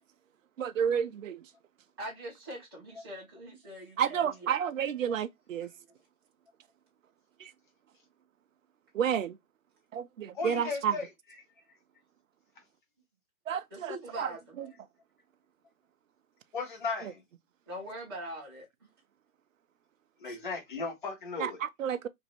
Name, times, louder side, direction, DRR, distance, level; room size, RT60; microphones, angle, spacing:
voice 1, 0.6-1.4 4.0-5.7 7.4-7.5 8.9-9.4 9.9-10.9 13.5-14.3 14.6-14.7 21.4-22.1, right 8 dB, 65° right, 0.5 m, -31 dB
voice 2, 2.0-4.5 13.7-14.6 17.7-18.9, equal, 15° right, 0.6 m, -43 dB
voice 3, 10.3-11.1 16.5-17.2 20.2-21.6, left 4 dB, 35° left, 0.8 m, -36 dB
3.0 x 2.6 x 2.8 m
hypercardioid pair, 170°, 44 cm